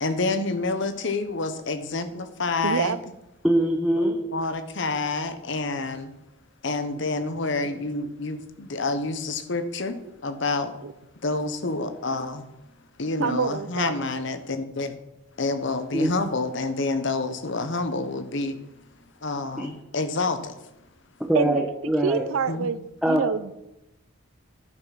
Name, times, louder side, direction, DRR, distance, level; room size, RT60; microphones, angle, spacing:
voice 1, 0.0-3.0 4.3-6.1 6.6-10.7 11.2-12.5 13.0-15.0 15.4-18.6 19.2-20.5 22.5-22.7, left 3 dB, 60° left, 10 dB, 0.9 m, -28 dB
voice 2, 2.6-3.0 10.8-10.9 13.2-13.9 21.3-21.6 22.0-22.8 23.1-23.5, right 5 dB, 75° right, 15 dB, 0.5 m, -26 dB
voice 3, 3.4-4.2 15.9-16.1 19.6-19.7 21.2-22.2 23.0-23.2, right 1 dB, ahead, 1 dB, 0.8 m, -23 dB
10.5 x 5.9 x 5.8 m, 0.91 s
head